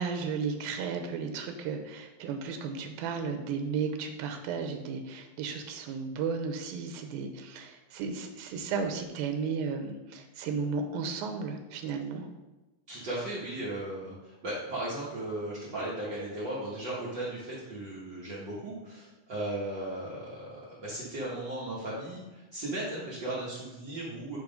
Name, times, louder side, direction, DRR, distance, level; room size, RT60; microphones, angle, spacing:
voice 1, 0.0-12.3, right 5 dB, 85° right, 5 dB, 2.5 m, -34 dB
voice 2, 12.9-24.4, right 1 dB, 70° right, -7 dB, 1.0 m, -36 dB
9.2 x 3.1 x 5.1 m, 1.1 s
omnidirectional pair, 4.1 m